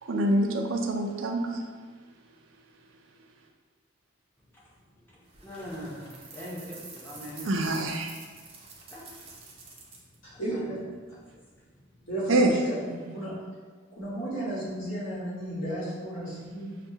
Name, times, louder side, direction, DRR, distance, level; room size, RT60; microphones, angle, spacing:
voice 1, 0.0-1.6 7.4-8.1 12.3-12.6, right 1 dB, 75° right, 3 dB, 0.5 m, -25 dB
voice 2, 4.4-7.9 8.3-10.7 11.1-12.1, equal, 10° left, -7 dB, 0.7 m, -45 dB
sound 1, 5.3-10.1, right 4 dB, 25° right, 0.5 m, -48 dB
voice 3, 10.2-10.8 12.1-13.4 13.9-16.8, right 1 dB, 80° left, -8 dB, 1.5 m, -33 dB
5.8 x 2.3 x 2.7 m, 1.5 s
head